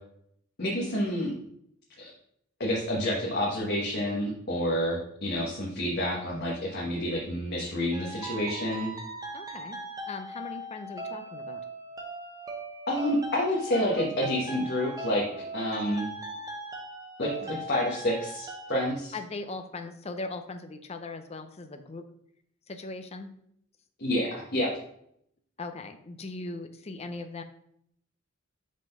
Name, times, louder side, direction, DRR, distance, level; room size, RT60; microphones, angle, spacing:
voice 1, 0.6-1.3 2.0-2.1 2.6-8.9 12.9-15.2 15.5-16.1 17.2-19.2 24.0-24.7, equal, 50° left, -3 dB, 1.2 m, -29 dB
sound 1, 7.9-18.8, right 1 dB, 15° right, 0.9 m, -39 dB
voice 2, 9.3-9.8 10.1-11.6 19.1-22.0 22.7-23.3 25.6-27.4, left 3 dB, 30° left, 7 dB, 0.5 m, -39 dB
5.1 x 3.9 x 5.2 m, 0.70 s
head